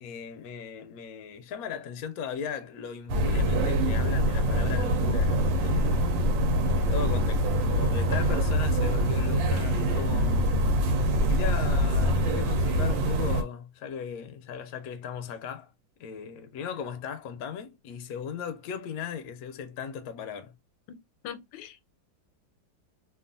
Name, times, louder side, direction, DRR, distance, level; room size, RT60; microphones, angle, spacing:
voice 1, 0.0-6.1 6.7-10.5 11.2-15.7 16.0-20.5, left 7 dB, 70° left, 0.9 m, -37 dB
sound 1, 3.1-13.4, equal, 90° right, 1.4 m, -24 dB
voice 2, 21.2-21.8, left 9 dB, 85° left, 1.3 m, -41 dB
3.0 x 2.4 x 2.4 m
omnidirectional pair, 1.9 m